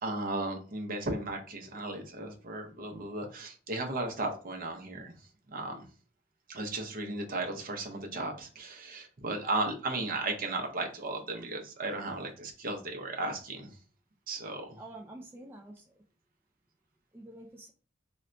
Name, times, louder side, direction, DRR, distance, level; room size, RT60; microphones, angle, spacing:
voice 1, 0.0-5.1 5.5-5.8 6.5-13.7 14.3-14.8, right 2 dB, 45° right, 3 dB, 0.7 m, -35 dB
voice 2, 14.8-15.9 17.1-17.7, right 1 dB, 10° right, 0 dB, 0.3 m, -47 dB
4.0 x 2.1 x 2.5 m, 0.40 s
head